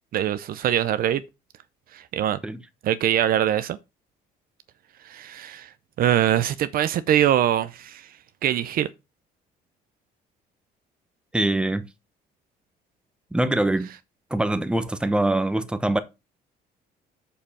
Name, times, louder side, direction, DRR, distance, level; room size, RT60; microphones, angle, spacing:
voice 1, 0.1-1.2 1.9-2.4 2.8-3.8 5.1-5.7 6.0-8.1 8.4-8.9, right 11 dB, 60° right, 0.6 m, -23 dB
voice 2, 11.3-11.9 13.3-13.9 14.3-16.0, right 1 dB, 5° right, 1.0 m, -23 dB
6.7 x 5.4 x 5.5 m
cardioid pair, 110°, 17 cm